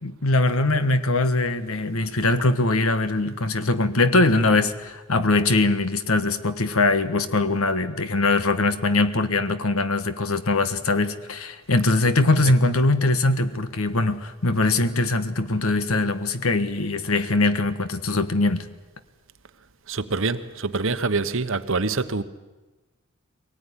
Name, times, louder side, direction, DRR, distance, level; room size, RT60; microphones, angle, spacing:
voice 1, 0.0-18.6, left 2 dB, 80° left, 11 dB, 1.5 m, -22 dB
voice 2, 19.9-22.2, right 3 dB, 65° right, 11 dB, 1.1 m, -25 dB
23.0 x 18.5 x 10.0 m, 1.2 s
head